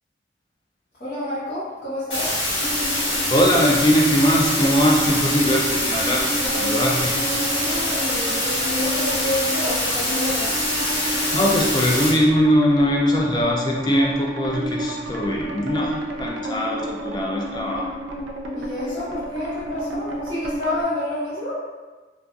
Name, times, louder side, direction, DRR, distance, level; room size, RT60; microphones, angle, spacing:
voice 1, 1.0-2.3 6.1-10.5 18.5-21.5, left 1 dB, 40° left, -14 dB, 0.8 m, -29 dB
sound 1, 2.1-12.1, left 1 dB, 75° left, 1.3 m, -24 dB
sound 2, 2.6-20.8, equal, 75° right, 0.4 m, -31 dB
voice 2, 3.3-7.1 11.3-15.9 16.2-17.9, equal, 25° left, -1 dB, 0.4 m, -21 dB
3.8 x 2.4 x 2.3 m, 1.3 s
head